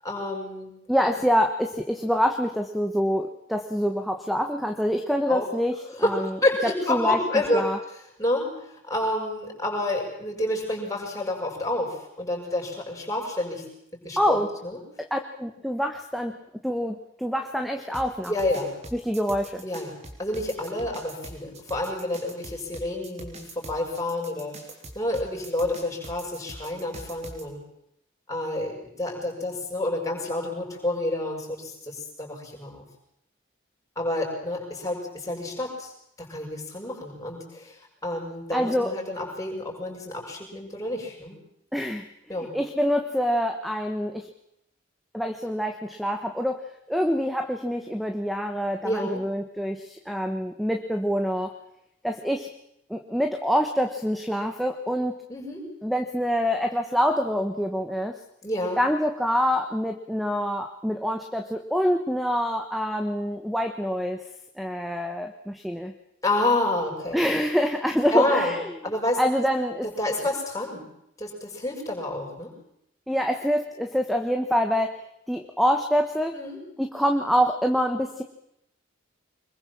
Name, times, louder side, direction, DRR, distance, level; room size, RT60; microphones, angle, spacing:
voice 1, 0.0-0.7 5.3-5.5 5.9-7.6 8.2-13.7 13.9-14.8 18.3-18.7 19.6-19.9 20.2-24.7 24.9-27.6 28.3-32.8 33.9-35.9 36.2-41.4 42.3-42.5 48.8-49.2 55.3-55.7 58.4-58.8 66.2-67.2 68.1-68.5 68.8-69.4 69.8-70.9 71.2-72.5 76.3-76.6, left 1 dB, 15° left, -1 dB, 6.8 m, -29 dB
voice 2, 0.9-6.4 6.9-7.2 7.5-7.8 14.2-14.5 15.0-16.4 16.6-18.3 18.9-19.6 38.5-38.9 41.7-42.1 42.4-44.3 45.1-51.5 52.0-52.5 52.9-55.2 55.8-58.2 58.8-64.2 64.6-65.9 67.1-68.6 69.2-69.9 73.1-74.9 75.3-76.4 76.8-78.2, equal, ahead, 6 dB, 1.2 m, -26 dB
sound 1, 17.9-27.4, right 1 dB, 35° right, 3.8 m, -42 dB
25.0 x 21.5 x 7.5 m, 0.79 s
head